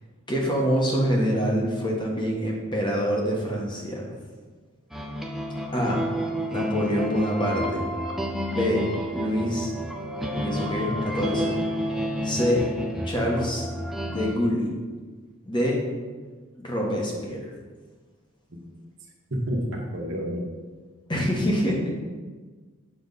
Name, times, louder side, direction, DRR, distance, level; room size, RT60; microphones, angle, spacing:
voice 1, 0.3-4.1 5.7-6.0 6.5-7.8 8.5-8.8 9.1-9.7 10.3-11.6 12.2-12.7 13.0-13.7 14.1-14.7 15.5-15.8 16.6-17.5 21.1-21.9, equal, 20° left, -2 dB, 1.4 m, -25 dB
sound 1, 4.9-14.3, equal, ahead, 0.5 m, -30 dB
voice 2, 19.3-19.6 19.9-20.4, equal, 65° right, -2 dB, 1.4 m, -29 dB
7.9 x 6.0 x 4.1 m, 1.4 s
head